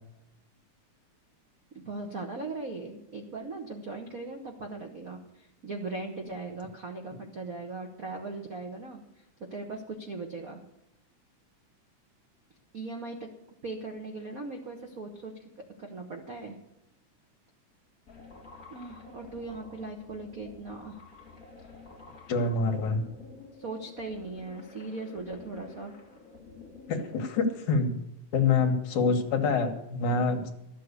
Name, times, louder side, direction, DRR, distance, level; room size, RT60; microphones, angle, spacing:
voice 1, 1.7-9.0 9.4-10.6 12.7-13.3 13.6-15.5 15.8-16.6 18.7-21.0 23.6-25.9, right 3 dB, 65° right, 3 dB, 0.8 m, -39 dB
sound 1, 18.1-27.5, left 4 dB, 30° left, 2.7 m, -50 dB
voice 2, 22.3-23.0 26.9-27.9 28.3-30.5, left 4 dB, 70° left, 5 dB, 2.8 m, -26 dB
13.0 x 7.6 x 8.2 m, 0.87 s
omnidirectional pair, 3.6 m